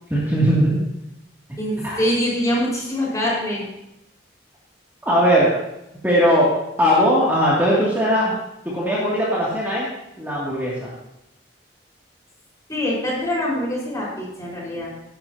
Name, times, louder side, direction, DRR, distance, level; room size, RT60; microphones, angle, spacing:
voice 1, 0.1-0.8 1.5-2.0 5.0-5.5 6.0-6.5 6.8-8.3 8.7-9.9 10.2-10.9, equal, 10° right, -7 dB, 2.7 m, -19 dB
voice 2, 1.6-3.7 12.7-14.9, left 1 dB, 20° left, -5 dB, 5.2 m, -24 dB
18.0 x 11.0 x 2.9 m, 0.86 s
head